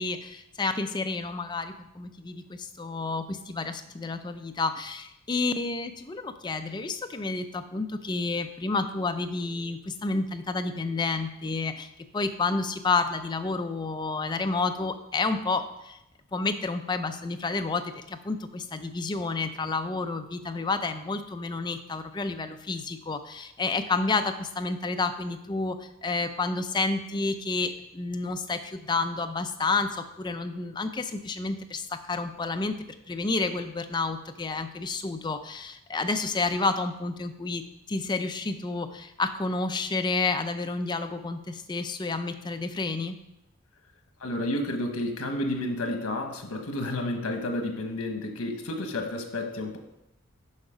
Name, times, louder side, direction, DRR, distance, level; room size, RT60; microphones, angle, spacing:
voice 1, 0.0-16.0 16.3-37.6 37.9-43.1, left 3 dB, 20° left, 8 dB, 0.4 m, -30 dB
voice 2, 44.2-49.8, left 1 dB, 80° left, 5 dB, 1.1 m, -31 dB
6.5 x 5.6 x 4.9 m, 0.87 s
head